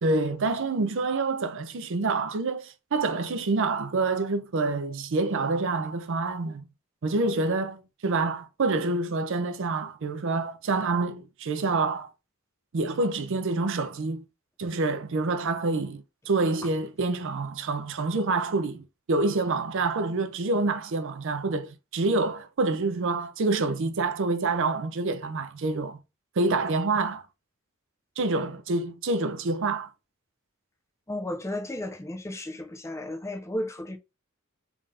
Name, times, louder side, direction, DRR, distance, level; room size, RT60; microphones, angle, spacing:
voice 1, 0.0-6.6 7.0-12.1 12.7-14.2 14.6-26.0 26.4-27.2 28.2-29.9, right 3 dB, 65° right, 0.5 m, -27 dB
voice 2, 31.1-34.0, left 1 dB, 15° left, 0.5 m, -34 dB
3.7 x 2.5 x 3.3 m
head